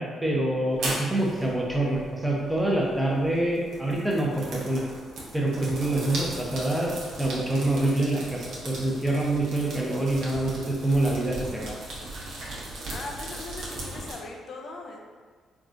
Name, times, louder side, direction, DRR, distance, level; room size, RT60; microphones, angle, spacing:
voice 1, 0.0-4.8 5.3-11.7, right 1 dB, 10° right, -2 dB, 0.6 m, -26 dB
sound 1, 0.7-14.1, right 2 dB, 75° right, 0.8 m, -38 dB
voice 2, 12.9-15.0, left 3 dB, 60° left, 1 dB, 0.4 m, -39 dB
3.5 x 2.3 x 2.6 m, 1.5 s
cardioid pair, 90°, 0 cm